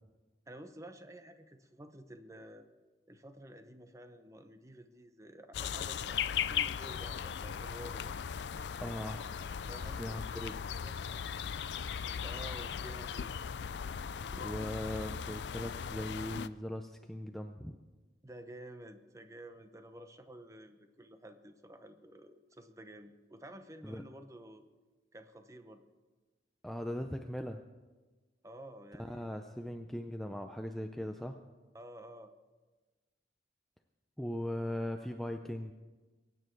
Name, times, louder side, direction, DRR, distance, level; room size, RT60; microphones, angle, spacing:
voice 1, 0.5-2.7 3.1-8.1 9.7-10.4 10.8-11.0 12.2-13.3 18.2-24.6 25.1-25.8 28.4-29.3 31.7-32.3, right 1 dB, 20° right, 8 dB, 0.8 m, -51 dB
sound 1, 5.5-16.5, left 7 dB, 75° left, 0.4 m, -38 dB
voice 2, 8.8-9.3 10.0-10.5 14.4-17.8 23.8-24.0 26.6-27.6 29.0-31.4 34.2-35.7, equal, ahead, 5 dB, 0.5 m, -39 dB
22.5 x 9.2 x 4.7 m, 1.2 s
head